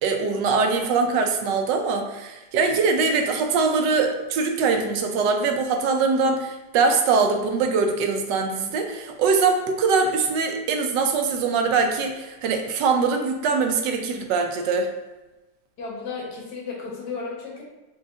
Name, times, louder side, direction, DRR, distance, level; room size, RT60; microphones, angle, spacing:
voice 1, 0.0-14.9, right 4 dB, 80° right, 4 dB, 1.2 m, -22 dB
voice 2, 15.8-17.6, left 4 dB, 65° left, -3 dB, 1.5 m, -33 dB
4.1 x 2.9 x 3.6 m, 1.1 s
omnidirectional pair, 1.9 m